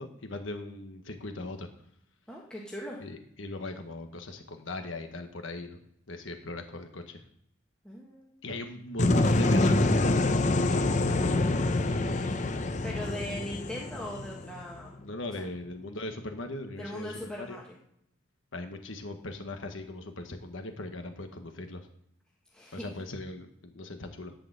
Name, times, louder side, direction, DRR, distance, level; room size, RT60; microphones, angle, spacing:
voice 1, 0.0-1.7 3.0-5.8 6.1-7.2 8.4-10.3 11.0-11.7 15.0-17.6 18.5-21.9 22.7-24.3, left 2 dB, 80° left, 6 dB, 1.2 m, -39 dB
voice 2, 2.3-3.0 7.8-8.3 12.8-15.0 15.3-15.5 16.8-17.8 22.5-22.9, equal, 5° left, -3 dB, 1.2 m, -40 dB
sound 1, 9.0-14.9, left 2 dB, 35° left, 0.7 m, -26 dB
11.0 x 4.9 x 7.9 m, 0.73 s
head